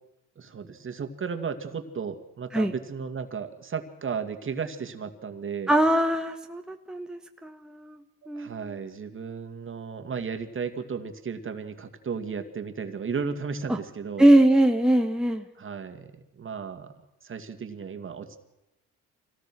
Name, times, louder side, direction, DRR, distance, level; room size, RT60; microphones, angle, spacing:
voice 1, 0.4-5.7 8.3-14.3 15.6-16.9 17.2-18.4, right 6 dB, 45° right, 7 dB, 2.3 m, -34 dB
voice 2, 5.7-8.0 8.3-8.7 13.7-13.8 14.2-15.4, right 1 dB, ahead, 4 dB, 1.4 m, -22 dB
25.0 x 17.5 x 6.2 m, 0.94 s
cardioid pair, 90°, 30 cm